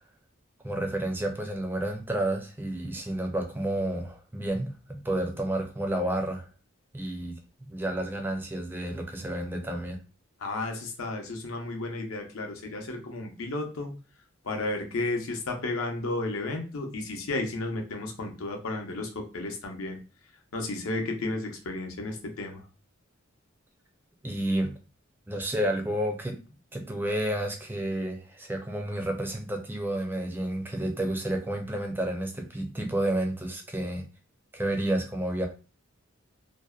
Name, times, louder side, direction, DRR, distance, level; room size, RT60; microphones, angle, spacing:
voice 1, 0.6-6.5 6.9-7.4 7.7-10.0 24.2-24.7 25.3-26.4 26.7-34.0 34.5-35.5, right 1 dB, 10° right, 3 dB, 0.4 m, -30 dB
voice 2, 10.4-13.9 14.4-20.0 20.5-22.6, left 2 dB, 80° left, 3 dB, 0.6 m, -33 dB
2.6 x 2.0 x 2.3 m, 0.34 s
head